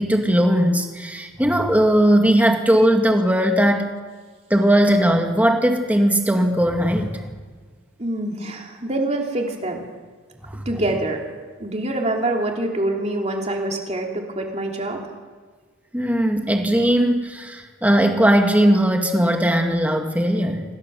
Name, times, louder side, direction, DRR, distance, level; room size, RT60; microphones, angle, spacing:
voice 1, 0.0-3.9 4.5-7.2 10.5-10.6 15.9-20.6, equal, 5° right, 3 dB, 1.9 m, -18 dB
voice 2, 8.0-9.8 10.6-11.2 11.6-15.0, right 1 dB, 30° right, 0 dB, 3.1 m, -25 dB
26.5 x 16.5 x 6.9 m, 1.5 s
head